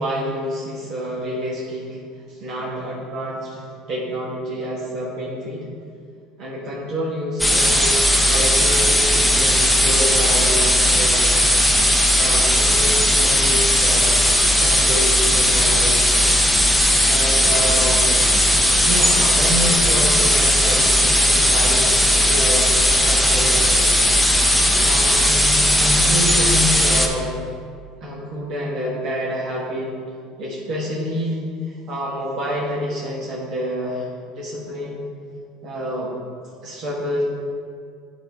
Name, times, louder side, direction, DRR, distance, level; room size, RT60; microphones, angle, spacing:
voice 1, 0.0-5.7 6.4-11.3 12.1-16.1 17.0-18.2 18.9-23.9 24.8-27.3 28.0-29.9 30.4-35.1 35.6-36.1 36.6-37.2, equal, 60° right, -6 dB, 1.3 m, -28 dB
sound 1, 7.4-27.1, equal, ahead, 0.7 m, -17 dB
9.7 x 3.9 x 3.5 m, 2.2 s
supercardioid pair, 115°, 0 cm